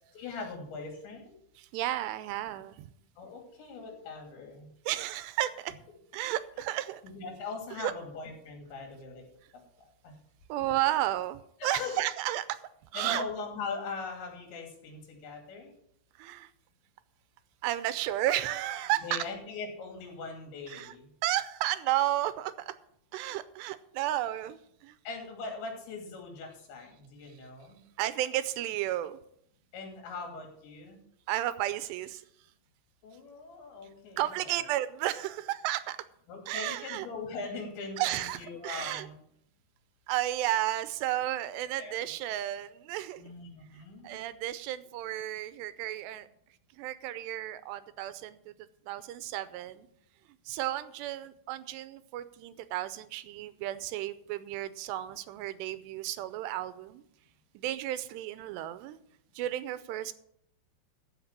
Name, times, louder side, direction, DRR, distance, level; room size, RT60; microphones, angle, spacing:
voice 1, 0.1-1.3 3.2-4.7 6.6-6.7 7.0-9.2 10.0-10.1 11.6-12.1 12.9-15.7 18.7-21.1 25.0-27.8 29.7-31.0 33.0-34.6 36.3-39.2 41.8-42.0 43.2-44.2, left 4 dB, 80° left, 2 dB, 4.9 m, -41 dB
voice 2, 1.6-2.9 4.9-5.7 6.1-7.0 7.8-7.9 10.5-12.6 12.9-13.2 16.2-16.5 17.6-19.2 20.7-20.9 21.2-22.7 23.1-25.0 28.0-29.2 31.3-32.2 34.2-36.0 36.5-37.1 38.0-39.1 40.1-43.2 43.7-46.3 46.7-48.4 48.9-49.9 50.5-57.0 57.5-59.0 59.3-60.1, right 14 dB, 80° right, 13 dB, 2.7 m, -33 dB
14.0 x 5.5 x 7.3 m, 0.71 s
omnidirectional pair, 5.1 m